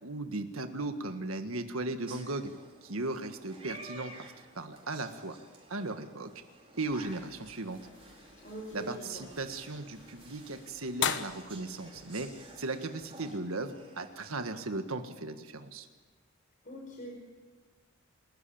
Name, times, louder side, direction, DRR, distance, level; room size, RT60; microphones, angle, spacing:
voice 1, 0.0-2.5 2.8-4.1 4.5-5.4 5.7-6.3 6.8-7.8 8.7-12.3 12.6-15.9, right 2 dB, 80° right, 7 dB, 1.6 m, -37 dB
sound 1, 2.1-14.3, right 2 dB, 25° right, 4.5 m, -52 dB
sound 2, 6.8-13.3, left 8 dB, 60° left, 1.2 m, -41 dB
voice 2, 8.4-9.2 16.6-17.3, equal, 40° left, -1 dB, 5.1 m, -43 dB
29.0 x 13.5 x 8.7 m, 1.3 s
head